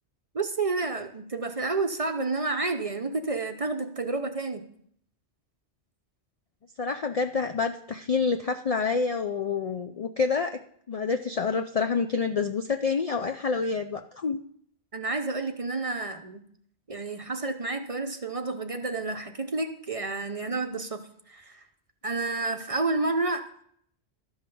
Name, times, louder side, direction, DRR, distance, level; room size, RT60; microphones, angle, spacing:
voice 1, 0.3-4.6 14.9-16.4 16.9-21.0 21.3-21.6 22.0-23.6, right 3 dB, 35° right, 6 dB, 0.7 m, -30 dB
voice 2, 6.8-10.6 10.9-14.4, left 5 dB, 50° left, 6 dB, 0.4 m, -27 dB
12.5 x 5.6 x 6.9 m, 0.66 s
omnidirectional pair, 1.2 m